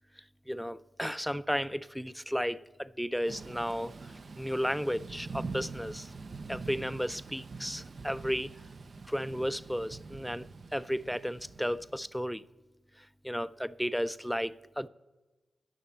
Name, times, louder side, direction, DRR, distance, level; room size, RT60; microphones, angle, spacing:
voice 1, 0.5-6.1 6.5-8.5 9.1-10.5 10.7-12.4 13.2-14.9, equal, ahead, 0.4 m, -34 dB
Thunder / Rain, 3.3-12.1, right 4 dB, 60° right, 0.6 m, -44 dB
10.0 x 6.5 x 8.6 m
cardioid pair, 45°, 0 cm